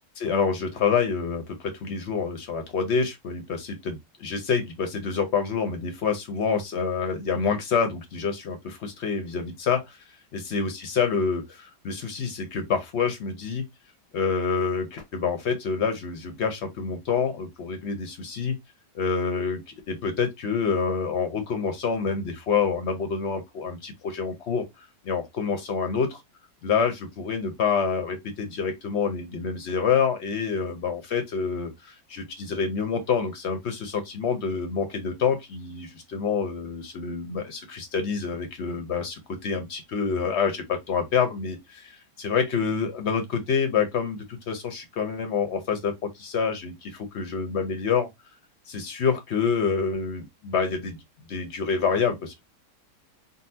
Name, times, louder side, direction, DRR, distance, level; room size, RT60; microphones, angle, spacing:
voice 1, 0.2-10.0 10.3-13.6 14.1-18.6 18.9-24.6 25.0-26.2 26.6-48.1 48.7-51.0 51.3-52.4, left 6 dB, 60° left, 0.7 m, -27 dB
3.9 x 2.0 x 2.6 m
omnidirectional pair, 1.8 m